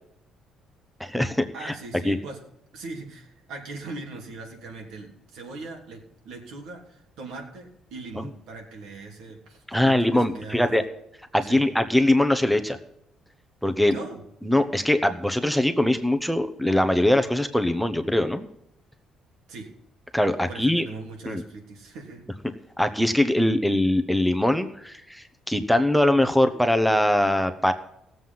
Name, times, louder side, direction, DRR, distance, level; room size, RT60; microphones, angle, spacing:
voice 1, 1.0-1.7 2.0-2.2 9.7-10.8 11.3-12.8 13.6-13.9 14.4-18.5 20.1-20.9 21.3-21.4 22.8-27.7, left 1 dB, ahead, 7 dB, 0.9 m, -22 dB
voice 2, 1.5-2.4 2.7-6.0 6.2-10.8 11.4-11.6 13.9-14.2 19.5-19.7 20.5-22.2, right 3 dB, 85° right, 1 dB, 3.3 m, -40 dB
16.5 x 7.8 x 5.7 m, 0.78 s
cardioid pair, 110°, 0 cm